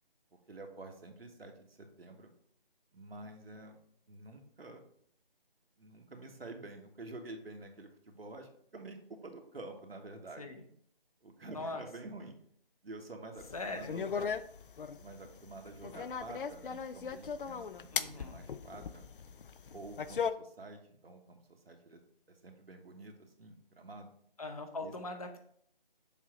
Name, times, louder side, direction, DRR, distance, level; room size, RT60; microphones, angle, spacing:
voice 1, 0.5-2.3 2.9-3.8 4.1-4.8 5.8-10.5 11.2-12.4 12.8-14.4 14.8-19.0 19.7-22.0 22.3-24.1 24.8-24.9, right 2 dB, 85° right, 3 dB, 1.3 m, -49 dB
voice 2, 11.5-11.8 13.5-13.9 17.9-18.4 24.4-25.4, left 2 dB, 40° left, 5 dB, 0.7 m, -41 dB
sound 1, 13.4-20.3, left 6 dB, 65° left, 0.4 m, -38 dB
7.2 x 2.8 x 4.8 m, 0.64 s
figure-of-eight pair, 165°, 29 cm